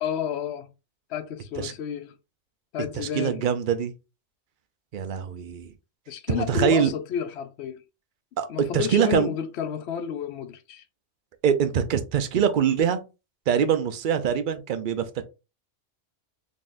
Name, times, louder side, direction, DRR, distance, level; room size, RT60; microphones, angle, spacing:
voice 1, 0.0-0.7 1.1-2.1 2.7-3.4 6.1-7.8 8.5-10.8, left 8 dB, 65° left, 0.8 m, -31 dB
voice 2, 2.9-3.9 4.9-5.7 6.3-6.9 8.4-8.5 8.7-9.3 11.4-13.0 13.5-15.2, right 8 dB, 55° right, 0.6 m, -23 dB
4.0 x 3.5 x 2.5 m
omnidirectional pair, 1.3 m